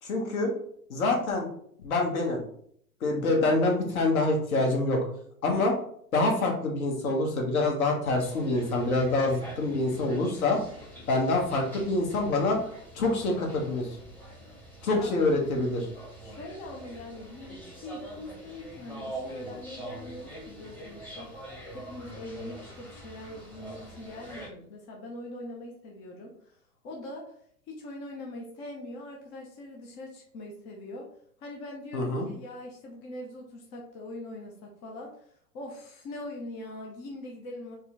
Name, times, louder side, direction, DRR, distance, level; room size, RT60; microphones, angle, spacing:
voice 1, 0.0-0.5 0.9-1.5 1.8-2.4 3.0-5.0 5.4-5.7 6.1-10.6 11.1-12.6 12.9-14.0 14.8-15.8 31.9-32.3, left 2 dB, 60° left, 1 dB, 1.3 m, -26 dB
sound 1, 8.2-24.5, right 1 dB, 5° left, 0.9 m, -44 dB
voice 2, 16.2-21.4 21.7-27.2 27.7-31.1 31.4-37.7, left 1 dB, 20° left, 0 dB, 0.5 m, -42 dB
4.3 x 2.2 x 3.8 m, 0.64 s
figure-of-eight pair, 105°, 47 cm